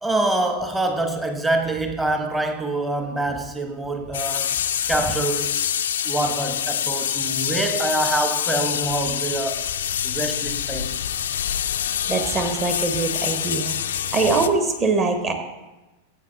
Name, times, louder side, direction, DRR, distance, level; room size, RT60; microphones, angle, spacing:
voice 1, 0.0-4.6 4.9-5.5 6.0-9.6 10.0-10.9, right 2 dB, 10° right, 5 dB, 1.0 m, -25 dB
sound 1, 4.1-14.5, left 9 dB, 65° left, 0.4 m, -26 dB
voice 2, 12.1-13.7 14.1-15.3, right 3 dB, 30° right, 6 dB, 1.3 m, -22 dB
14.0 x 7.8 x 2.6 m, 1.1 s
figure-of-eight pair, 90°, 0 cm